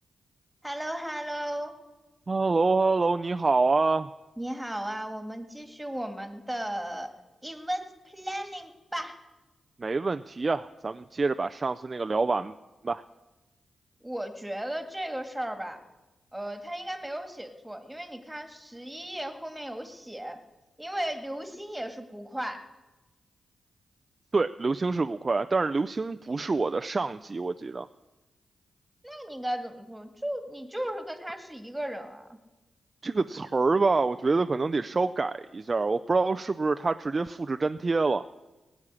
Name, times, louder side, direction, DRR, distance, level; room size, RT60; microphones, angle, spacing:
voice 1, 0.6-1.8 4.4-7.1 7.4-9.2 14.0-15.8 16.3-20.4 20.8-22.7 29.0-32.4, right 1 dB, 10° right, 7 dB, 2.0 m, -35 dB
voice 2, 2.3-4.1 9.8-12.5 12.8-13.0 24.3-27.9 33.0-38.2, right 3 dB, 40° right, 9 dB, 0.4 m, -26 dB
17.0 x 7.3 x 9.8 m, 1.1 s
supercardioid pair, 40°, 0 cm